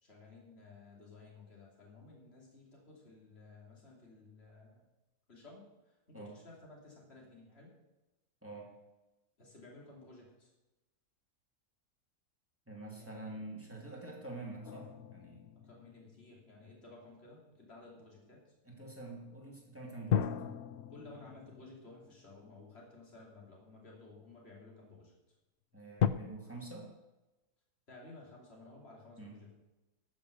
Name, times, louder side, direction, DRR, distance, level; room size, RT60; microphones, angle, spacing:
voice 1, 0.0-4.9 5.3-7.7 9.4-10.5 13.0-13.2 13.9-14.2 15.6-18.4 20.9-25.1 27.9-29.5, left 2 dB, 40° left, -2 dB, 3.3 m, -55 dB
voice 2, 12.7-15.4 18.6-20.3 25.7-26.9 29.2-29.4, right 2 dB, 10° right, -2 dB, 2.7 m, -46 dB
sound 1, 14.6-17.2 20.1-23.4 24.1-24.2 26.0-26.1, left 9 dB, 65° left, 0.7 m, -37 dB
13.0 x 7.1 x 6.7 m, 1.0 s
omnidirectional pair, 1.6 m